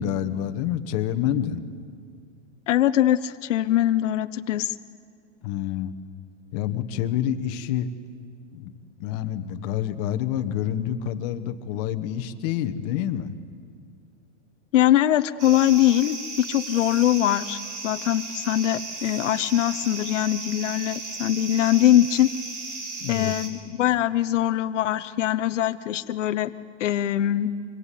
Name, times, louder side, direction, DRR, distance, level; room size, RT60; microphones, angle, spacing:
voice 1, 0.0-1.6 5.4-5.9 6.5-7.9 8.5-8.7 9.0-13.4 23.0-23.3, left 10 dB, 35° left, 11 dB, 1.2 m, -27 dB
voice 2, 2.7-4.7 14.7-22.3 23.1-26.5 26.8-27.5, left 12 dB, 75° left, 10 dB, 0.9 m, -22 dB
sound 1, 15.4-23.5, right 3 dB, 70° right, 6.6 m, -35 dB
26.5 x 24.5 x 8.5 m, 2.2 s
supercardioid pair, 160°, 37 cm